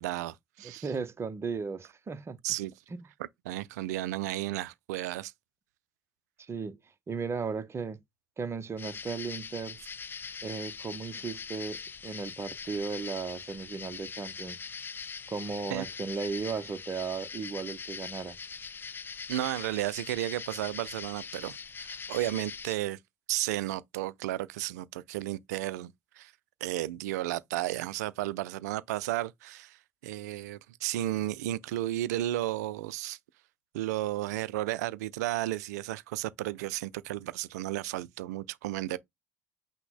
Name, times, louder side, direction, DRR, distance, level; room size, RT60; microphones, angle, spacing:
voice 1, 0.0-0.9 2.4-2.7 3.2-5.3 15.7-15.9 19.3-23.0 23.3-26.3 26.6-33.2 33.7-39.0, right 15 dB, 70° right, 0.4 m, -33 dB
voice 2, 0.6-2.4 2.9-3.1 6.4-6.8 7.1-8.0 8.4-9.8 10.4-14.7 15.3-18.4, right 5 dB, 30° right, 0.7 m, -36 dB
sound 1, 8.8-22.7, left 6 dB, 25° left, 0.3 m, -42 dB
5.8 x 2.1 x 3.8 m
figure-of-eight pair, 60°, 9 cm